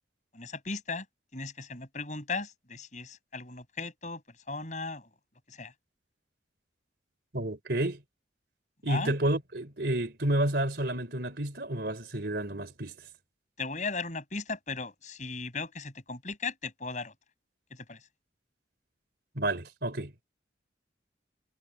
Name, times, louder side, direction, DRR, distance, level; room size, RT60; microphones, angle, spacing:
voice 1, 0.3-1.1 1.3-4.2 4.5-5.1 5.5-5.7 8.8-9.2 13.6-17.1 17.9-18.0, left 3 dB, 40° left, 7.2 m, -37 dB
voice 2, 7.3-8.0 8.8-12.9 19.4-20.1, right 1 dB, 60° right, 3.7 m, -30 dB
head